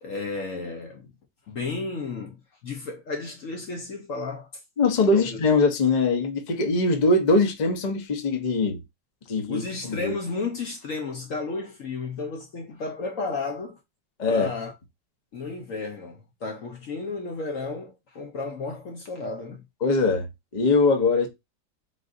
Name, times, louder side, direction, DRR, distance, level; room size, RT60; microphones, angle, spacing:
voice 1, 0.0-1.1 1.5-4.5 5.0-5.4 9.5-13.8 14.3-14.7 15.3-19.6, left 3 dB, 60° left, 0.9 m, -33 dB
voice 2, 4.8-8.8 9.3-10.1 14.2-14.5 19.8-20.3 20.5-21.3, left 3 dB, 40° left, 0.6 m, -22 dB
3.8 x 2.5 x 3.8 m
omnidirectional pair, 2.0 m